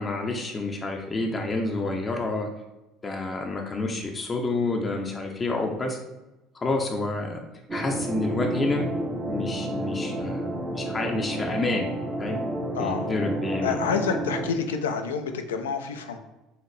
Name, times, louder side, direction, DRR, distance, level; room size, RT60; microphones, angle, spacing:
voice 1, 0.0-2.5 3.0-6.0 6.5-7.4 7.7-8.9 9.3-11.9 12.2-12.4 12.8-13.8, left 2 dB, 25° left, 2 dB, 0.6 m, -29 dB
sound 1, 7.7-14.5, right 1 dB, 30° right, 0.8 m, -30 dB
voice 2, 12.7-13.1 13.6-16.2, left 6 dB, 75° left, 7 dB, 0.4 m, -28 dB
5.6 x 2.5 x 3.0 m, 1.0 s
figure-of-eight pair, 65°, 0 cm